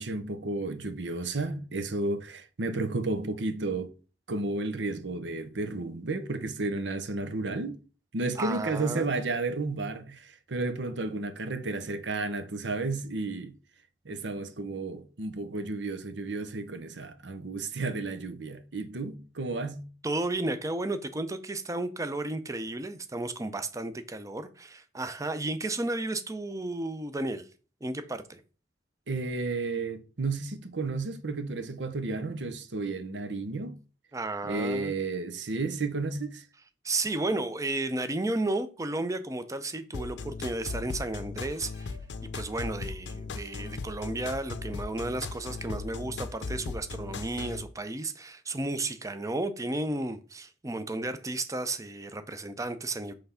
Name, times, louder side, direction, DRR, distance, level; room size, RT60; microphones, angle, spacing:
voice 1, 0.0-3.9 4.3-7.8 8.1-13.5 14.0-19.9 29.1-33.8 34.4-36.5, right 3 dB, 80° right, 0.8 m, -32 dB
voice 2, 8.4-9.1 20.0-27.5 27.8-28.4 34.1-34.9 36.8-42.0 42.3-53.1, right 2 dB, 20° right, 0.6 m, -33 dB
sound 1, 39.9-47.6, left 4 dB, 75° left, 0.6 m, -37 dB
5.7 x 3.4 x 5.6 m
head